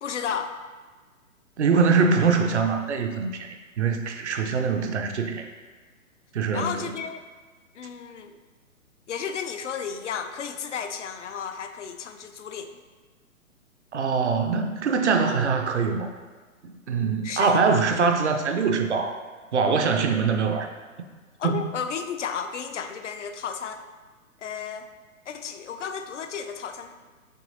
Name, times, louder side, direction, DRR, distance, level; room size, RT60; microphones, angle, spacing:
voice 1, 0.0-0.6 6.5-7.2 7.7-8.4 9.1-12.8 17.2-17.6 21.4-23.8 24.4-24.9 25.3-26.9, left 7 dB, 60° left, 8 dB, 0.5 m, -33 dB
voice 2, 1.6-5.5 6.3-6.9 13.9-16.1 16.6-19.2 19.5-20.7 21.4-21.7, right 5 dB, 55° right, 5 dB, 0.6 m, -23 dB
6.2 x 3.0 x 2.7 m, 1.4 s
figure-of-eight pair, 125°, 42 cm